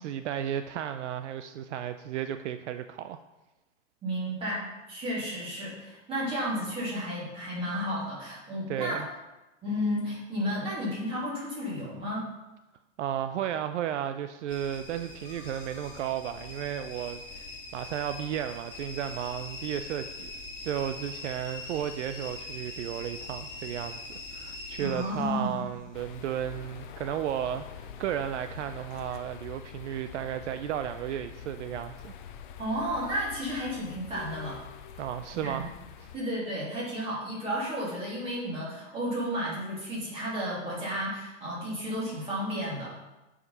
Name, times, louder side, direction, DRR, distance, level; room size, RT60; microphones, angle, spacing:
voice 1, 0.0-3.2 8.7-9.1 13.0-20.3 20.6-24.0 24.3-32.2 35.0-35.7 36.0-36.1, right 10 dB, 70° right, 10 dB, 0.5 m, -34 dB
voice 2, 4.0-9.0 9.6-12.3 24.8-25.6 32.6-34.6 34.9-35.0 35.4-35.6 36.1-43.0, equal, 15° right, -7 dB, 2.7 m, -32 dB
sound 1, 14.5-29.4 29.6-30.3 30.8-31.3 31.7-31.8, left 3 dB, 20° left, 2.2 m, -43 dB
sound 2, 25.9-36.2, left 8 dB, 40° left, 0.6 m, -45 dB
8.0 x 5.0 x 5.5 m, 1.0 s
hypercardioid pair, 160°, 37 cm